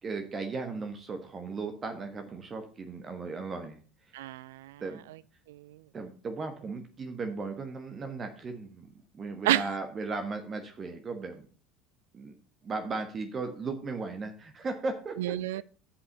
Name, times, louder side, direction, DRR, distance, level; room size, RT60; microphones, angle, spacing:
voice 1, 0.0-3.8 4.1-4.2 4.8-5.0 5.9-8.9 9.1-11.5 12.1-12.3 12.6-15.6, right 3 dB, 30° right, 1.4 m, -36 dB
voice 2, 4.1-4.8 5.5-5.8 9.4-9.7 15.2-15.6, right 14 dB, 70° right, 0.4 m, -29 dB
8.4 x 5.6 x 6.7 m
figure-of-eight pair, 70°, 0 cm